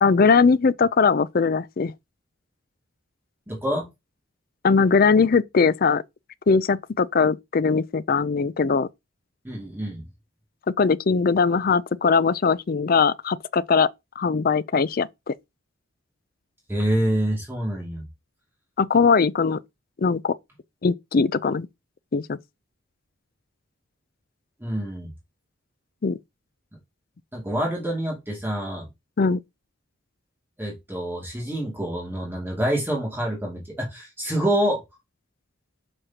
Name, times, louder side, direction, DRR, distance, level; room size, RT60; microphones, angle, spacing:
voice 1, 0.0-1.9 4.6-6.0 6.5-8.9 10.8-13.9 14.2-15.3 18.8-19.6 20.0-20.3 20.8-21.7 22.1-22.4 26.0-26.2 29.2-29.4, left 5 dB, 45° left, 0.4 m, -20 dB
voice 2, 3.5-3.9 9.4-10.0 16.7-18.0 24.6-25.1 27.3-28.9 30.6-34.8, right 1 dB, 10° right, 2.4 m, -26 dB
6.4 x 6.3 x 2.9 m
head